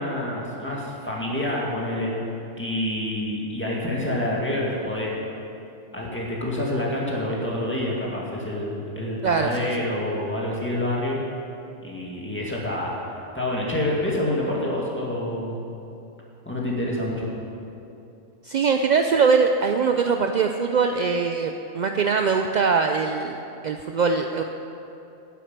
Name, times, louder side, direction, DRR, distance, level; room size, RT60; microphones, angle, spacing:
voice 1, 0.0-2.1 2.6-5.2 5.9-11.2 11.8-13.0 13.3-15.6 16.5-17.3, left 1 dB, 10° left, -5 dB, 2.0 m, -27 dB
voice 2, 9.2-9.7 18.4-24.4, right 5 dB, 65° right, 5 dB, 0.4 m, -22 dB
10.0 x 7.7 x 8.1 m, 2.8 s
omnidirectional pair, 1.3 m